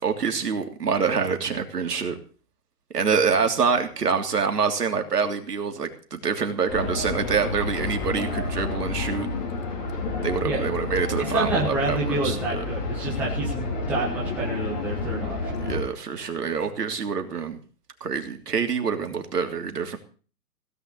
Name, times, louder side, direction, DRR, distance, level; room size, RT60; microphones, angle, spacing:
voice 1, 0.0-2.2 2.9-9.3 10.2-12.6 15.6-17.6 18.0-20.0, right 5 dB, 75° right, 5 dB, 3.1 m, -26 dB
sound 1, 6.7-15.8, left 3 dB, 30° left, 3.7 m, -30 dB
voice 2, 11.2-15.6, right 2 dB, 5° right, -4 dB, 1.3 m, -28 dB
17.0 x 5.8 x 9.7 m, 0.40 s
hypercardioid pair, 170°, 48 cm